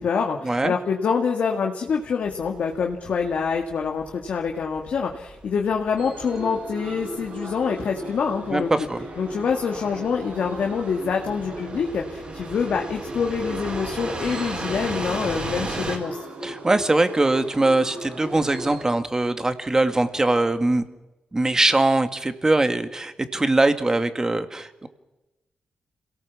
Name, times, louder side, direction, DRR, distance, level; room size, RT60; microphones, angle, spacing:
voice 1, 0.0-8.9 9.2-16.2, left 6 dB, 75° left, 1 dB, 2.1 m, -26 dB
sound 1, 2.3-16.0, right 2 dB, 40° right, 5.1 m, -36 dB
sound 2, 6.0-18.8, right 1 dB, 65° right, 6.6 m, -37 dB
voice 2, 8.5-9.1 16.4-20.8 21.3-24.9, right 2 dB, 25° right, 9 dB, 2.0 m, -22 dB
26.5 x 18.0 x 7.3 m, 1.0 s
cardioid pair, 70°, 3 cm